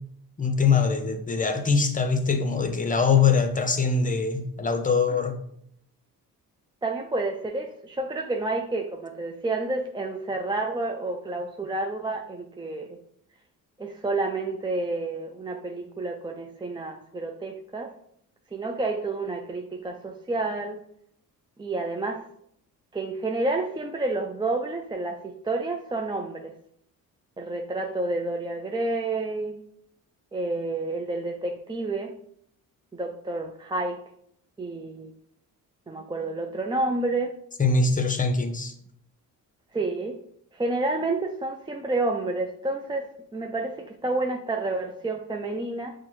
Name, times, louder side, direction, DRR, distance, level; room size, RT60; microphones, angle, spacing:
voice 1, 0.4-5.4 37.6-38.7, left 5 dB, 20° left, 0.7 m, -23 dB
voice 2, 6.8-13.0 13.8-17.9 18.5-20.8 21.6-22.2 22.9-26.5 27.4-29.6 30.3-32.1 32.9-34.0 34.6-35.1 35.9-37.4 39.7-40.2 40.5-45.9, right 2 dB, 15° right, 0.3 m, -29 dB
6.0 x 2.2 x 3.0 m
supercardioid pair, 65°, 38 cm